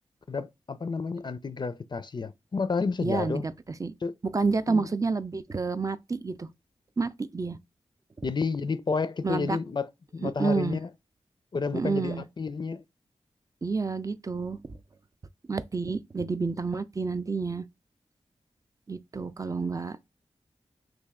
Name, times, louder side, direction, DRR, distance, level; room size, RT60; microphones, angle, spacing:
voice 1, 0.3-3.4 4.0-4.1 4.7-4.9 8.2-10.9 11.5-12.8, left 4 dB, 40° left, 0.4 m, -31 dB
voice 2, 3.0-3.5 3.8-3.9 4.3-6.5 7.0-7.6 9.2-9.6 10.2-10.8 11.7-12.2 13.6-14.6 15.5-17.7 18.9-20.1, right 4 dB, 30° right, 0.4 m, -29 dB
3.1 x 2.5 x 3.6 m
cardioid pair, 50°, 11 cm